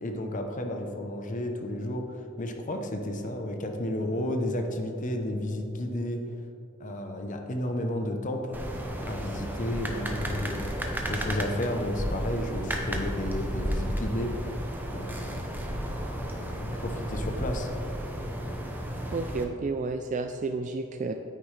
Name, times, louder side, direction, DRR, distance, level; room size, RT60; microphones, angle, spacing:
voice 1, 0.0-6.2 6.8-8.6 9.0-14.3 14.9-15.4 16.4-17.7, left 1 dB, 35° left, 4 dB, 0.7 m, -32 dB
sound 1, 8.5-19.4, equal, 10° right, 0.7 m, -33 dB
voice 2, 19.1-21.1, right 3 dB, 35° right, 5 dB, 0.3 m, -31 dB
9.3 x 9.3 x 3.3 m, 2.8 s
head